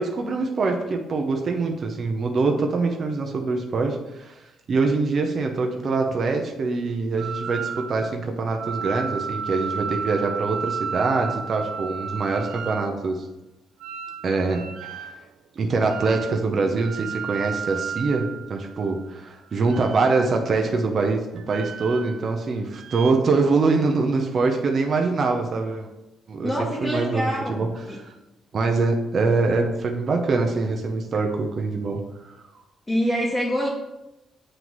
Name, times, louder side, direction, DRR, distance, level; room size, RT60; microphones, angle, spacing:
voice 1, 0.0-4.4 4.7-13.3 14.2-14.6 15.0-15.1 15.6-25.9 26.3-28.1 28.5-32.0, right 3 dB, 50° right, 2 dB, 0.7 m, -24 dB
Israel Hek bip, 7.2-8.1 8.5-12.9 13.8-15.2 15.9-16.4 16.7-19.0 19.6-20.4 21.4-22.4 22.7-23.1, right 6 dB, 75° right, 0.4 m, -33 dB
voice 2, 26.4-28.0 32.9-33.7, equal, 10° left, -4 dB, 1.1 m, -25 dB
7.7 x 3.1 x 4.0 m, 0.96 s
cardioid pair, 90°, 0 cm